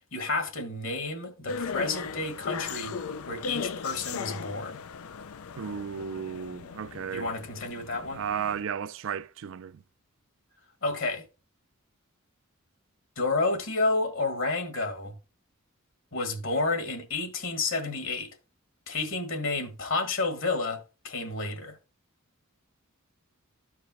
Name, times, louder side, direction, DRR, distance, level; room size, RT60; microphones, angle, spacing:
voice 1, 0.1-2.9 3.3-4.8 7.1-8.2 10.8-11.2 13.2-15.1 16.1-18.3 18.9-21.8, left 3 dB, 65° left, 1.8 m, -30 dB
sound 1, 1.5-8.6, left 5 dB, 85° left, 0.5 m, -37 dB
voice 2, 5.6-7.3 8.1-9.8, right 7 dB, 65° right, 0.4 m, -34 dB
14.0 x 4.7 x 3.0 m
head